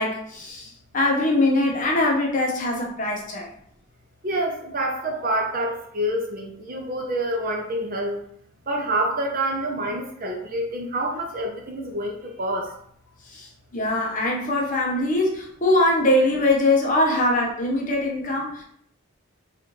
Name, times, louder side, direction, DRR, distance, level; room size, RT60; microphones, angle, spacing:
voice 1, 0.0-3.5 13.3-13.5 13.7-18.6, left 1 dB, 35° left, -1 dB, 0.7 m, -22 dB
voice 2, 4.2-8.2 8.7-12.7, right 1 dB, 40° right, 1 dB, 0.6 m, -27 dB
4.1 x 2.5 x 3.0 m, 0.67 s
head